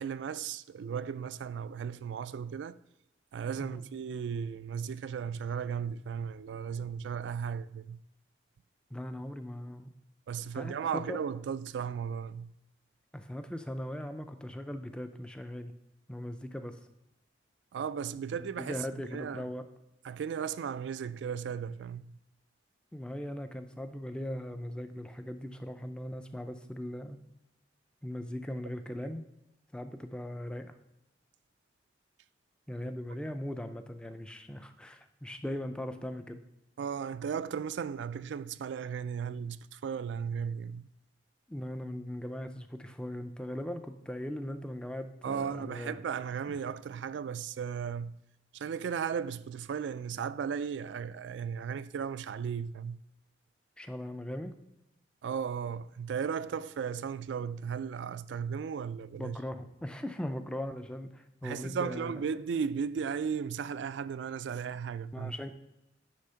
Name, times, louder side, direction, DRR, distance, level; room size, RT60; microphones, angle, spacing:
voice 1, 0.0-2.8 3.3-8.0 10.3-12.5 17.7-19.5 20.0-22.1 36.8-40.9 45.2-48.2 48.5-53.0 55.2-59.4 61.4-65.4, right 7 dB, 75° right, 0.3 m, -36 dB
voice 2, 8.9-9.9 10.5-11.2 13.1-15.7 16.1-16.8 18.4-19.7 22.9-27.2 28.0-29.3 29.7-30.7 32.7-36.4 41.5-46.0 46.5-46.6 53.8-54.5 59.1-62.1 65.1-65.5, left 1 dB, 5° left, 0.4 m, -39 dB
9.7 x 3.5 x 5.6 m
head